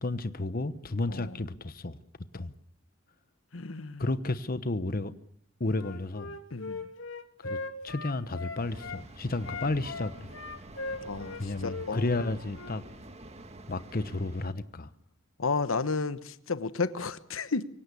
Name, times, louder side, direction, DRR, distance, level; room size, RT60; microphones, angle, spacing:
voice 1, 0.0-2.0 2.3-2.5 4.0-5.1 5.6-6.4 7.4-7.6 7.8-10.3 11.4-12.8 13.7-14.9, left 2 dB, 45° left, 1.0 m, -32 dB
voice 2, 3.5-4.1 6.5-6.8 11.0-12.2 15.4-17.7, left 4 dB, 85° left, 1.1 m, -32 dB
Wind instrument woodwind instrument, 5.7-9.0 9.4-12.8, left 3 dB, 70° left, 2.7 m, -39 dB
sound 1, 8.6-14.5, right 2 dB, 30° right, 1.7 m, -48 dB
24.5 x 17.0 x 8.4 m
head